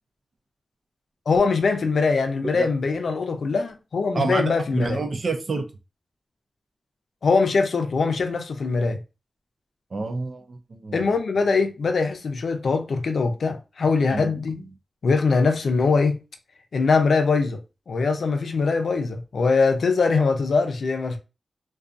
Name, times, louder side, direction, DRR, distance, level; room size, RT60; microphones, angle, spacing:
voice 1, 1.3-5.0 7.2-9.0 10.9-14.6 15.0-16.2 16.7-17.6 17.9-21.2, left 4 dB, 75° left, 0.4 m, -22 dB
voice 2, 4.1-5.7 9.9-11.1 14.1-14.3, right 3 dB, 55° right, 0.4 m, -28 dB
2.5 x 2.2 x 2.4 m
wide cardioid pair, 95°, 0 cm